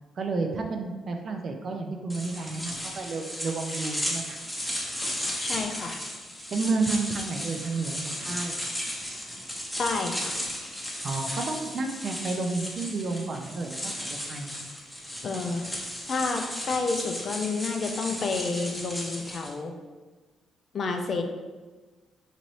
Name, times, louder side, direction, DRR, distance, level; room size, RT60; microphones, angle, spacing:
voice 1, 0.2-4.4 6.5-8.5 11.0-13.9 14.3-14.5, right 3 dB, 50° right, 4 dB, 0.4 m, -31 dB
sound 1, 2.1-19.5, left 1 dB, 5° left, 0.8 m, -35 dB
voice 2, 5.4-6.0 9.8-10.4 15.2-15.7 16.1-19.7 20.7-21.2, left 4 dB, 50° left, 4 dB, 0.4 m, -30 dB
4.0 x 2.7 x 3.1 m, 1.3 s
cardioid pair, 90°, 0 cm